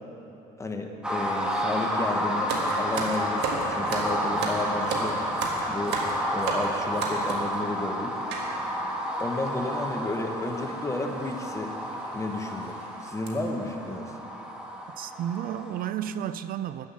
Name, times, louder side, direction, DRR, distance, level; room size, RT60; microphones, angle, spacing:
voice 1, 0.6-5.2 5.7-6.0 6.3-8.2 9.2-11.7 12.1-14.1, left 2 dB, 15° left, 3 dB, 1.2 m, -32 dB
sound 1, 1.0-15.9, equal, 5° right, 1.4 m, -31 dB
sound 2, 2.5-7.5 8.3-8.5 9.2-9.3 9.5-9.7 10.6-10.8 11.3-11.4 11.9-12.0 12.5-12.7 13.1-13.3, right 3 dB, 85° right, 1.7 m, -32 dB
voice 2, 15.0-16.9, right 10 dB, 60° right, 13 dB, 0.4 m, -32 dB
13.5 x 5.8 x 8.6 m, 3.0 s
cardioid pair, 110°, 17 cm